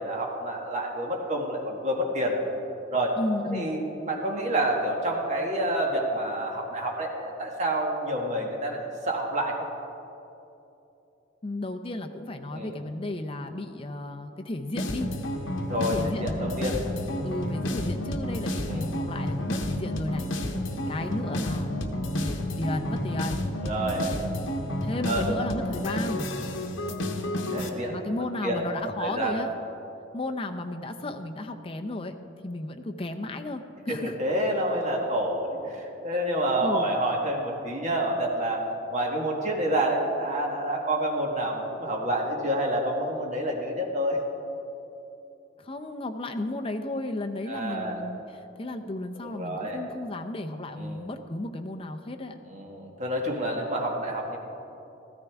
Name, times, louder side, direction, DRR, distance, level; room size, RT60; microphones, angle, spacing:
voice 1, 0.0-2.4 2.9-3.2 3.5-9.7 12.5-12.8 15.7-16.8 18.7-18.9 23.6-24.1 25.0-25.4 26.7-27.0 27.5-27.9 28.4-28.7 29.0-29.4 33.9-38.6 38.9-44.2 47.5-48.0 49.3-49.8 50.7-51.0 52.4-54.4, right 1 dB, 35° right, 0 dB, 1.6 m, -28 dB
voice 2, 3.2-3.7 11.4-15.1 15.9-16.8 17.2-20.3 20.9-23.5 24.8-26.3 27.9-29.5 30.1-32.2 32.4-34.1 36.6-36.9 45.6-52.4, left 2 dB, 30° left, 6 dB, 0.6 m, -33 dB
sound 1, 14.8-27.7, left 1 dB, 80° left, 1.0 m, -31 dB
14.5 x 13.5 x 3.5 m, 2.9 s
head